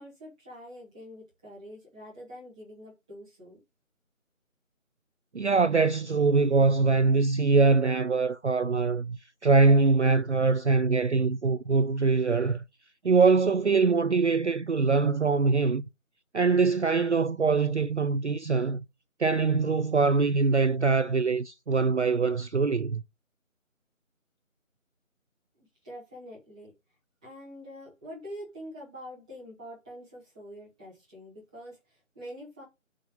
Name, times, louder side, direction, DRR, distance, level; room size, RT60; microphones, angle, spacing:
voice 1, 0.0-3.6 25.5-26.7 27.2-32.6, equal, 5° right, 1.9 m, -45 dB
voice 2, 5.3-12.6 13.0-15.8 16.3-18.8 19.2-23.0, right 4 dB, 55° right, 0.5 m, -23 dB
6.3 x 5.3 x 5.4 m
figure-of-eight pair, 170°, 41 cm